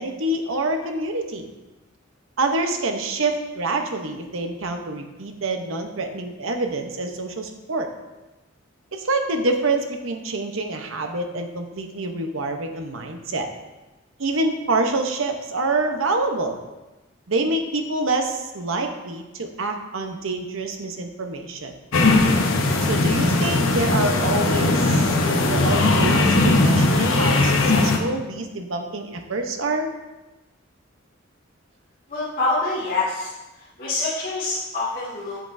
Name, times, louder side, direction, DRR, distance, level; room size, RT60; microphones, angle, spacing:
voice 1, 0.0-1.5 2.4-7.9 8.9-13.5 14.2-16.6 17.3-21.7 22.8-29.9, right 2 dB, 80° right, 4 dB, 0.9 m, -26 dB
sound 1, 21.9-28.0, left 2 dB, 80° left, 0.9 m, -19 dB
voice 2, 32.1-33.3 33.6-35.4, left 3 dB, 45° left, -12 dB, 2.1 m, -26 dB
7.9 x 7.7 x 2.6 m, 1.1 s
head